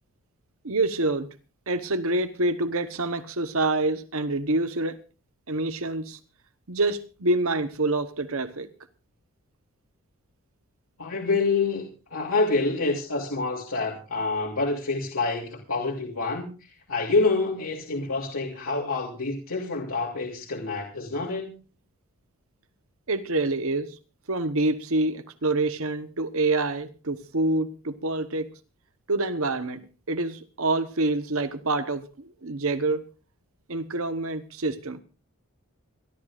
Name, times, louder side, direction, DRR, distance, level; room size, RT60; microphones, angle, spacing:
voice 1, 0.6-1.3 1.7-5.0 5.5-6.2 6.7-8.7 23.1-24.0 24.3-28.5 29.1-29.8 30.1-33.0 33.7-35.0, right 2 dB, 75° right, 1.1 m, -26 dB
voice 2, 11.0-16.5 16.9-21.5, left 3 dB, 75° left, 3.0 m, -27 dB
28.0 x 11.5 x 2.5 m
head